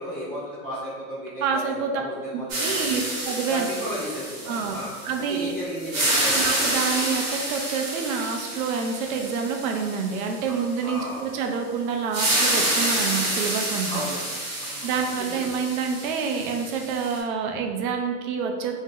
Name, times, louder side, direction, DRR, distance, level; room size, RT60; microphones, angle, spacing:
voice 1, 0.0-3.0 3.5-4.9 5.3-6.4 10.8-11.2 13.9-14.3 14.6-15.5, equal, 20° left, -10 dB, 0.6 m, -34 dB
voice 2, 1.4-2.0 2.3-3.7 4.5-5.5 6.3-14.0 14.6-18.7, right 6 dB, 65° right, 3 dB, 0.6 m, -28 dB
sound 1, 2.5-5.4 5.8-10.6 12.1-17.2, right 1 dB, 45° right, 1.0 m, -28 dB
2.6 x 2.0 x 3.6 m, 1.5 s
supercardioid pair, 155°, 45 cm